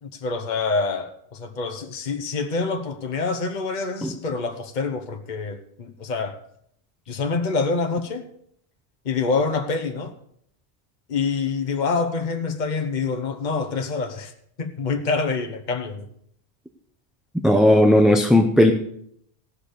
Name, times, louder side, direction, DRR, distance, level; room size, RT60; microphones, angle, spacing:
voice 1, 0.0-6.4 7.1-8.3 9.0-10.1 11.1-14.3 14.6-16.1, left 4 dB, 45° left, 1.1 m, -26 dB
voice 2, 17.4-18.7, left 1 dB, ahead, 0.7 m, -15 dB
16.5 x 6.1 x 6.7 m
omnidirectional pair, 1.1 m